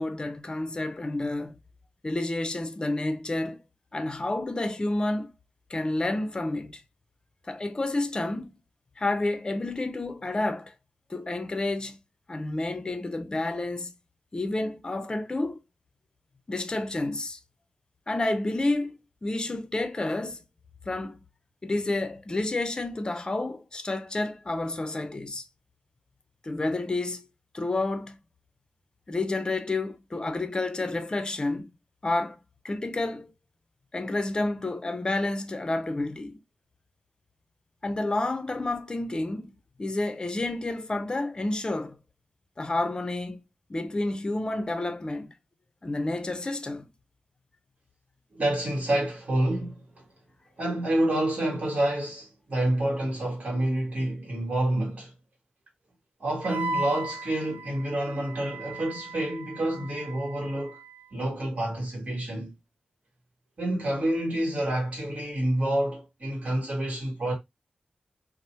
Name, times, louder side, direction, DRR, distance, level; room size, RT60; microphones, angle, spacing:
voice 1, 0.0-1.6 2.0-3.6 3.9-5.3 5.7-6.8 7.5-8.6 9.0-10.7 11.1-12.0 12.3-13.9 14.3-15.6 16.5-17.4 18.1-19.0 19.2-20.4 20.9-21.2 21.6-25.4 26.4-27.3 27.5-28.2 29.1-31.7 32.0-32.4 32.6-33.3 33.9-36.4 37.8-42.0 42.6-43.4 43.7-45.3 45.8-46.9, left 2 dB, 30° left, 0.4 m, -30 dB
voice 2, 48.3-49.8 50.6-55.1 56.2-60.8 61.1-62.5 63.6-67.3, right 1 dB, 50° right, 1.2 m, -28 dB
Wind instrument woodwind instrument, 56.4-61.1, right 2 dB, 85° right, 0.4 m, -37 dB
2.7 x 2.0 x 3.0 m
wide cardioid pair, 110°, 3 cm